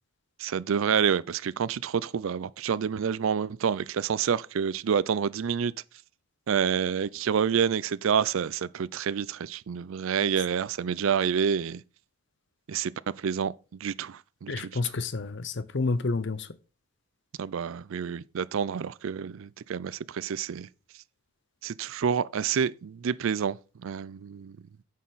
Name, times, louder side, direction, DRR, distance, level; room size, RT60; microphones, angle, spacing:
voice 1, 0.4-5.7 6.5-11.8 12.7-12.9 13.2-13.5 13.8-14.7 17.4-20.7 21.6-24.6, right 7 dB, 70° right, 0.4 m, -28 dB
voice 2, 14.5-16.5, left 3 dB, 55° left, 0.7 m, -29 dB
9.3 x 6.5 x 4.0 m
head